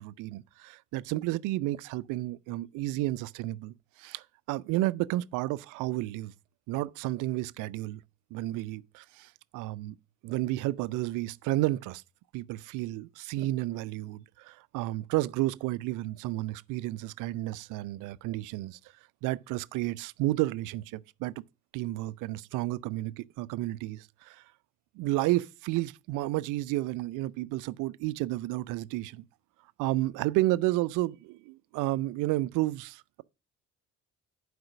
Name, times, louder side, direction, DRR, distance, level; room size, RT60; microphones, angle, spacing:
voice 1, 0.0-3.7 4.0-6.3 6.7-8.0 8.3-9.9 10.2-12.0 12.3-18.8 19.2-21.3 21.7-24.4 25.0-29.2 29.8-33.2, right 17 dB, 45° right, 0.6 m, -31 dB
11.5 x 5.1 x 6.1 m
figure-of-eight pair, 55°, 44 cm